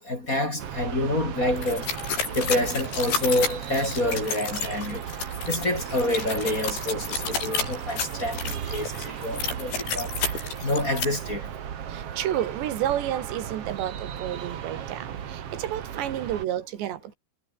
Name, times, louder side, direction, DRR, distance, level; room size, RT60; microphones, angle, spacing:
voice 1, 0.1-1.9 2.3-5.0 5.5-8.4 8.7-11.5, left 1 dB, 20° left, 3.2 m, -27 dB
sound 1, 0.6-16.5, right 9 dB, 55° right, 1.7 m, -36 dB
sound 2, 1.6-11.0, left 6 dB, 80° left, 8.4 m, -31 dB
voice 2, 11.9-17.2, right 11 dB, 85° right, 4.1 m, -30 dB
omnidirectional pair, 4.9 m